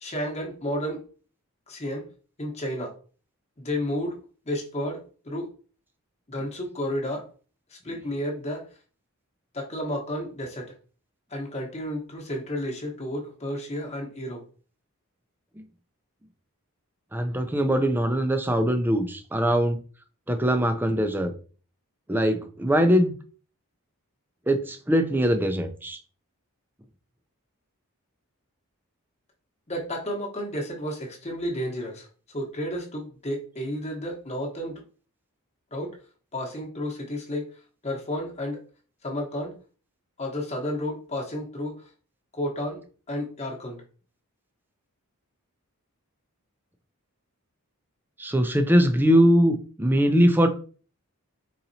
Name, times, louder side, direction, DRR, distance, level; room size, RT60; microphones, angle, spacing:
voice 1, 0.0-1.0 1.7-2.1 2.4-2.9 3.6-4.2 4.5-5.5 6.3-7.3 7.7-8.6 9.5-10.7 11.3-14.4 29.7-32.1 32.3-34.8 35.7-35.9 36.3-37.5 37.8-38.6 39.0-39.5 40.2-41.9 42.3-42.8 43.1-43.8, equal, 30° left, -1 dB, 1.0 m, -31 dB
voice 2, 17.1-19.8 20.3-21.3 22.1-23.1 24.5-26.0 48.2-50.5, equal, 10° right, 7 dB, 0.4 m, -22 dB
4.2 x 3.9 x 2.7 m, 0.39 s
head